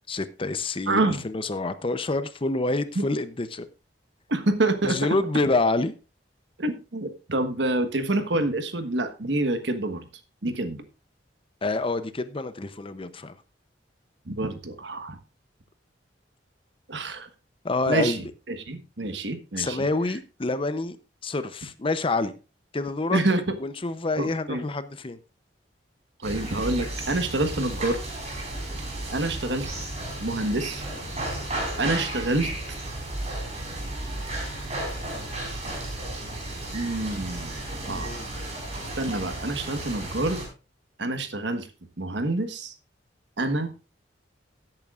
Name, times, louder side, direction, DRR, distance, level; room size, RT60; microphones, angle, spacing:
voice 1, 0.1-3.7 4.8-5.9 11.6-13.3 17.6-18.2 19.6-21.0 21.2-22.4 22.7-23.2 23.6-25.2 37.9-38.4, left 2 dB, 30° left, 0.6 m, -27 dB
voice 2, 0.9-1.2 2.9-3.0 4.3-5.0 6.6-10.1 10.4-10.8 14.3-15.2 16.9-17.3 17.9-19.9 23.1-23.6 24.2-24.6 26.2-28.0 29.1-29.7 30.2-30.8 31.8-32.8 36.7-38.2 39.0-40.4 41.0-41.7 42.0-42.7 43.4-43.7, right 2 dB, 65° right, 1.3 m, -27 dB
sound 1, 26.2-40.5, right 1 dB, 40° right, 4.4 m, -33 dB
16.5 x 8.9 x 2.4 m
head